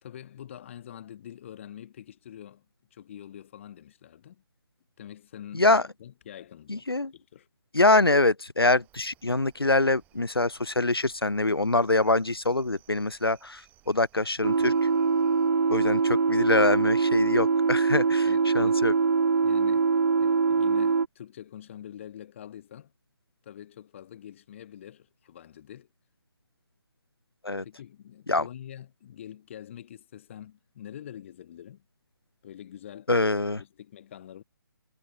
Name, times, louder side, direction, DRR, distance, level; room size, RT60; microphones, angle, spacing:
voice 1, 0.0-2.7 2.9-4.4 5.0-7.5 18.3-18.8 19.4-19.9 20.2-22.9 23.4-25.9 27.6-31.8 32.4-33.1 33.5-34.4, left 10 dB, 30° left, 2.7 m, -45 dB
voice 2, 6.7-7.1 7.7-14.9 15.7-18.9 27.4-27.6 28.3-28.4 33.1-33.6, left 2 dB, 90° left, 0.7 m, -24 dB
sound 1, 8.8-15.5, right 15 dB, 15° right, 4.7 m, -61 dB
sound 2, 14.4-21.1, right 5 dB, 65° right, 0.4 m, -23 dB
figure-of-eight pair, 145°, 12 cm